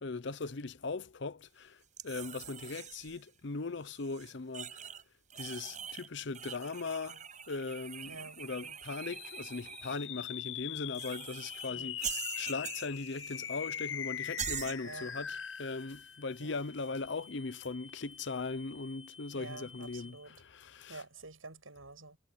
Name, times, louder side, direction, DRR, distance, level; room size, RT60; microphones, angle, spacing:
voice 1, 0.0-4.9 5.4-21.0, left 3 dB, 60° left, 0.7 m, -39 dB
sound 1, 2.0-3.2 3.9-5.0 5.3-6.1 6.3-10.0 10.9-11.7 12.0-13.4 13.7-13.8 14.4-14.8, right 9 dB, 35° right, 7.8 m, -43 dB
voice 2, 8.1-8.4 11.7-11.9 14.8-15.1 16.4-16.6 19.3-20.4 20.9-22.2, right 3 dB, 85° right, 7.6 m, -48 dB
sound 2, 9.0-20.5, left 10 dB, 80° left, 5.8 m, -43 dB
head